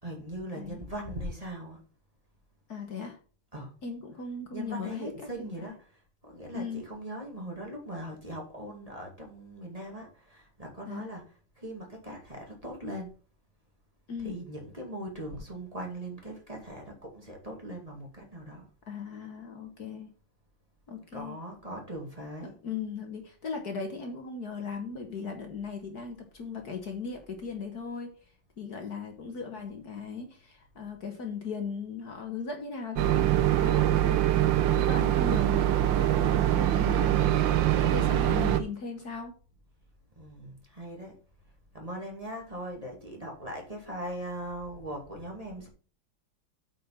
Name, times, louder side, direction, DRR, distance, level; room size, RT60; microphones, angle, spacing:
voice 1, 0.0-1.8 3.5-3.7 4.5-13.1 14.2-18.7 21.1-22.6 40.2-41.2 41.7-45.7, right 1 dB, 20° right, 2.4 m, -40 dB
voice 2, 2.7-3.2 3.8-5.1 5.4-5.7 6.5-6.8 10.9-11.1 14.1-14.3 18.9-20.1 20.9-21.4 22.6-28.1 28.6-34.3 34.8-37.4 37.8-39.3, left 5 dB, 55° left, 1.9 m, -38 dB
sound 1, 33.0-38.6, right 12 dB, 75° right, 1.5 m, -24 dB
8.6 x 5.3 x 5.8 m
omnidirectional pair, 2.1 m